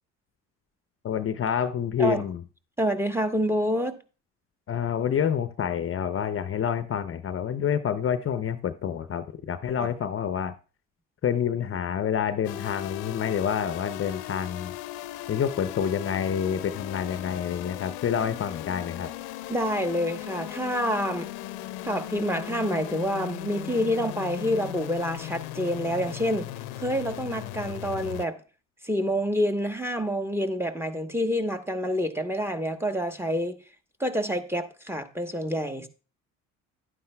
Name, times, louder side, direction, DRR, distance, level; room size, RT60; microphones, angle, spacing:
voice 1, 1.0-2.4 4.7-10.5 11.2-14.7 15.3-19.1, left 8 dB, 35° left, 0.6 m, -28 dB
voice 2, 2.8-4.0 19.5-21.3 21.8-26.5 26.8-28.4 28.8-33.6 34.0-35.9, equal, 5° right, 1.1 m, -27 dB
sound 1, 12.4-28.3, left 15 dB, 75° left, 0.6 m, -37 dB
11.0 x 9.3 x 2.2 m
hypercardioid pair, 65°, 37 cm